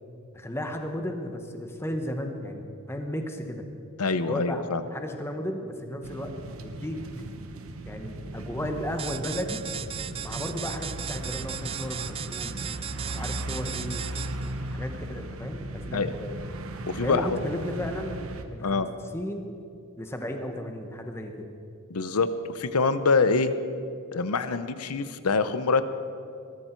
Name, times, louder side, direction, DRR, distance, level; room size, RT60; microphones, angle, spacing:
voice 1, 0.3-3.6 4.3-4.6 4.9-7.0 7.8-9.6 10.2-12.6 13.1-14.0 14.7-16.4 17.0-18.9 19.1-19.5 20.0-21.5, equal, 10° left, 5 dB, 1.2 m, -34 dB
voice 2, 4.0-4.8 15.9-16.1 16.9-17.4 18.6-18.9 21.9-23.5 24.1-25.8, left 4 dB, 90° left, 12 dB, 0.8 m, -25 dB
sound 1, 6.0-18.4, right 1 dB, 65° right, 1.0 m, -37 dB
sound 2, 9.0-14.5, right 9 dB, 25° right, 0.3 m, -36 dB
20.5 x 13.5 x 4.6 m, 2.5 s
head